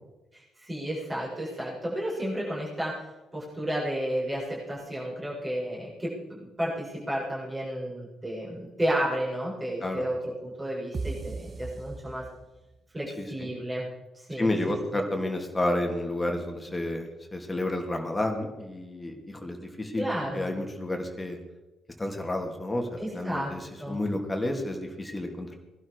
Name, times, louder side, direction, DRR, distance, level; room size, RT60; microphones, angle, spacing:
voice 1, 0.3-3.0 3.3-12.2 12.9-13.9 14.1-14.5 14.9-15.0 20.0-20.5 23.0-23.5 23.8-24.0, right 1 dB, 20° right, -6 dB, 7.4 m, -32 dB
sound 1, 10.9-12.8, right 4 dB, 40° right, 0.7 m, -37 dB
voice 2, 13.2-13.5 14.4-21.4 22.0-22.9 23.1-25.6, left 1 dB, 15° left, 2 dB, 3.1 m, -31 dB
20.5 x 12.0 x 5.0 m, 1.1 s
figure-of-eight pair, 40°, 0 cm